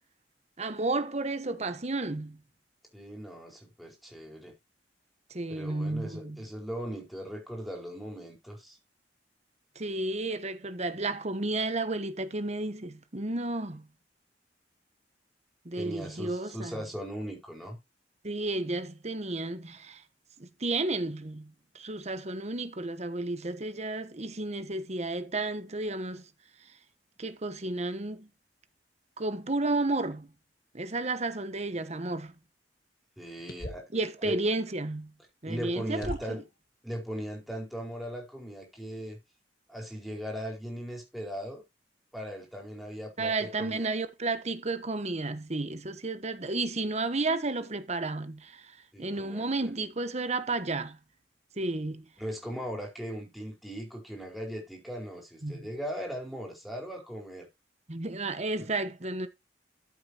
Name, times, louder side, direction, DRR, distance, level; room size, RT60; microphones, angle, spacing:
voice 1, 0.6-2.4 5.3-6.4 9.7-13.8 15.6-16.8 18.2-20.0 20.4-26.3 27.2-28.3 29.2-30.3 30.7-32.3 33.9-35.1 35.4-36.2 43.2-51.0 51.6-52.0 55.4-55.7 57.9-59.3, right 2 dB, 40° right, 1.2 m, -32 dB
voice 2, 2.9-4.5 5.5-8.8 15.7-17.8 33.2-33.9 34.2-34.4 35.4-36.4 36.8-39.2 39.7-41.6 42.1-43.9 48.9-49.7 52.2-57.5 58.6-58.7, equal, ahead, 4.6 m, -38 dB
sound 1, 33.5-34.0 35.3-35.4 36.0-36.5, left 1 dB, 60° left, 1.9 m, -39 dB
13.5 x 7.8 x 3.0 m
head